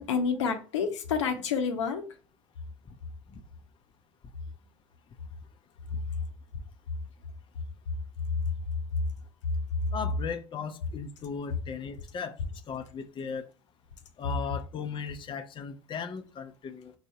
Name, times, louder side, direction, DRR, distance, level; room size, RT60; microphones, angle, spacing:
voice 1, 0.0-2.1, left 6 dB, 85° left, 0.8 m, -29 dB
voice 2, 9.9-12.4 12.7-13.4 14.2-16.9, left 6 dB, 35° left, 0.6 m, -37 dB
4.0 x 2.7 x 4.6 m
hypercardioid pair, 75°, 15 cm